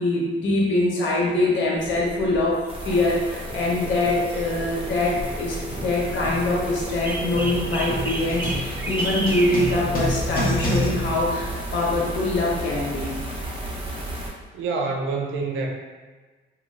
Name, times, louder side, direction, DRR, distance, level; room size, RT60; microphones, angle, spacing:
voice 1, 0.0-13.2, left 2 dB, 70° left, -3 dB, 0.8 m, -24 dB
sound 1, 1.7-10.9, right 1 dB, 10° right, 0.4 m, -34 dB
sound 2, 2.7-14.3, right 1 dB, 25° right, 1.0 m, -34 dB
sound 3, 3.1-3.2 3.5-12.0, equal, 45° left, 0.9 m, -31 dB
voice 2, 14.5-15.7, right 3 dB, 75° right, 1 dB, 0.5 m, -26 dB
2.7 x 2.3 x 3.1 m, 1.3 s
cardioid pair, 90°, 20 cm